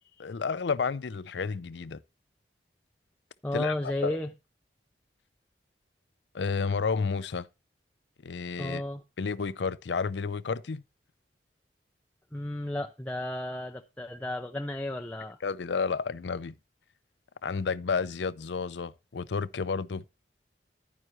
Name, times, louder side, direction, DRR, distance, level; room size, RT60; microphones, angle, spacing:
voice 1, 0.2-2.0 3.5-3.7 4.0-4.2 6.3-7.5 8.2-8.8 9.2-10.8 15.4-16.5 17.4-20.0, left 5 dB, 80° left, 0.5 m, -31 dB
voice 2, 3.4-4.3 8.6-9.0 12.3-15.4, left 1 dB, 10° left, 0.5 m, -33 dB
11.0 x 9.3 x 3.0 m
head